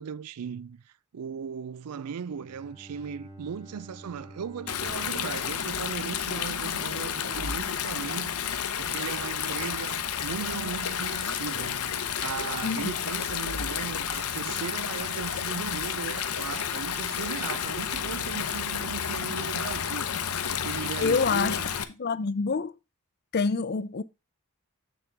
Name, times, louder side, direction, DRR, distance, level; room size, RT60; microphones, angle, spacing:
voice 1, 0.0-20.1 20.5-21.5, right 7 dB, 90° right, 0.4 m, -37 dB
Bowed string instrument, 2.2-6.8, right 1 dB, 20° right, 1.2 m, -49 dB
Stream, 4.7-21.8, left 8 dB, 85° left, 0.8 m, -31 dB
Wind instrument woodwind instrument, 8.5-18.6, left 2 dB, 45° right, 2.7 m, -48 dB
voice 2, 12.6-12.9 21.0-21.6 22.0-22.7 23.3-24.0, left 4 dB, 45° left, 0.5 m, -26 dB
7.2 x 6.8 x 3.4 m
head